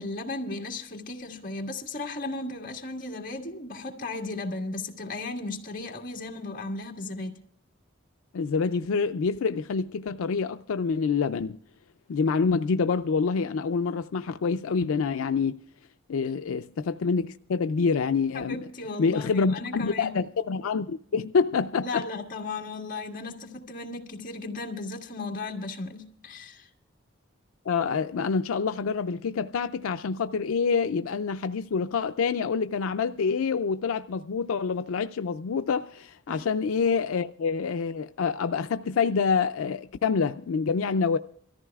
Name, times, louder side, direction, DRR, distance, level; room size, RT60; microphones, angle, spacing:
voice 1, 0.0-7.4 18.3-20.2 21.8-26.7 36.3-36.5, left 3 dB, 40° left, 1.8 m, -35 dB
voice 2, 8.3-11.6 12.1-15.6 16.1-18.6 19.0-22.0 27.7-41.2, left 5 dB, 80° left, 0.4 m, -27 dB
24.5 x 14.0 x 2.3 m
head